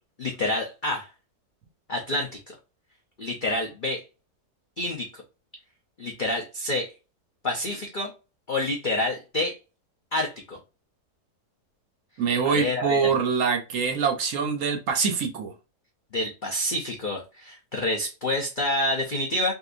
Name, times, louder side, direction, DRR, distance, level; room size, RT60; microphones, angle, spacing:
voice 1, 0.2-1.1 1.9-2.5 3.2-4.0 4.8-5.2 6.0-6.9 7.4-8.1 8.5-9.6 10.1-10.6 12.4-13.1 16.1-19.5, left 1 dB, 70° left, 0.4 m, -28 dB
voice 2, 12.2-15.5, right 6 dB, 65° right, 0.9 m, -24 dB
3.7 x 2.5 x 2.5 m
omnidirectional pair, 1.7 m